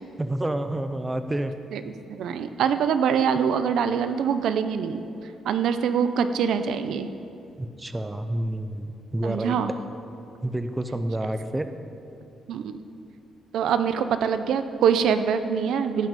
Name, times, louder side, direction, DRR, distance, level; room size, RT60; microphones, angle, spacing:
voice 1, 0.2-1.5 7.6-9.6 10.4-11.7, right 1 dB, 10° right, 8 dB, 0.5 m, -29 dB
voice 2, 1.7-5.0 5.4-7.1 9.2-9.7 12.5-12.8 13.5-16.1, right 7 dB, 75° right, 10 dB, 0.6 m, -24 dB
16.5 x 6.0 x 5.3 m, 2.6 s
cardioid pair, 140°, 0 cm